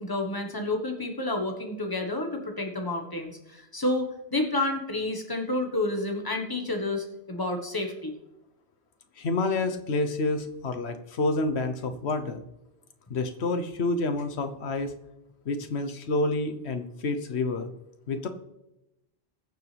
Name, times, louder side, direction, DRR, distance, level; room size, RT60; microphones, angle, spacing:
voice 1, 0.0-8.1, left 2 dB, 20° left, 3 dB, 1.3 m, -30 dB
voice 2, 9.2-12.4 13.1-14.9 15.4-17.7 18.1-18.3, left 3 dB, 75° left, 7 dB, 1.2 m, -28 dB
20.5 x 7.2 x 3.4 m, 0.92 s
omnidirectional pair, 1.1 m